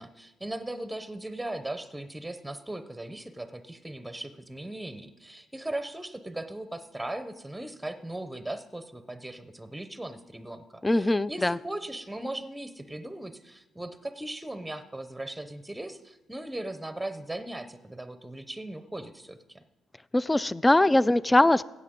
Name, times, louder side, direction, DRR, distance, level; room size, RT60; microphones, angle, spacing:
voice 1, 0.0-19.6, right 1 dB, 5° right, 10 dB, 0.7 m, -38 dB
voice 2, 10.8-11.6 20.1-21.6, left 1 dB, 15° left, 19 dB, 0.3 m, -22 dB
15.5 x 8.5 x 3.7 m, 1.1 s
cardioid pair, 90°, 0 cm